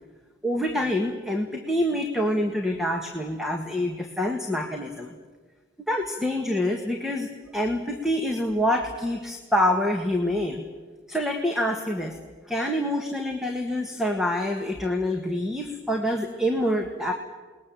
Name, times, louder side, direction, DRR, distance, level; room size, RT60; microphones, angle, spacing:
voice 1, 0.4-5.1 5.9-10.6 11.1-12.2 12.5-17.1, left 1 dB, ahead, 2 dB, 1.6 m, -26 dB
29.0 x 20.5 x 7.5 m, 1.4 s
head